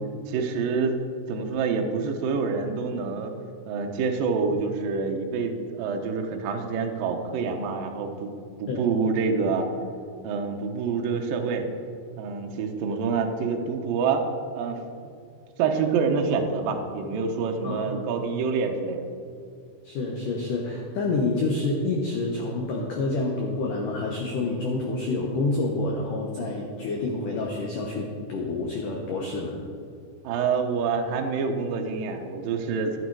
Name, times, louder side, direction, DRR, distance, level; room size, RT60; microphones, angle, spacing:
voice 1, 0.3-1.0 1.3-3.3 3.7-8.3 8.6-9.7 10.2-11.7 12.2-14.3 14.5-14.8 15.6-19.1 30.2-33.0, right 5 dB, 80° right, 4 dB, 2.0 m, -27 dB
voice 2, 17.6-18.0 19.8-29.6, left 3 dB, 85° left, -1 dB, 1.8 m, -28 dB
14.0 x 9.2 x 4.7 m, 2.4 s
omnidirectional pair, 5.5 m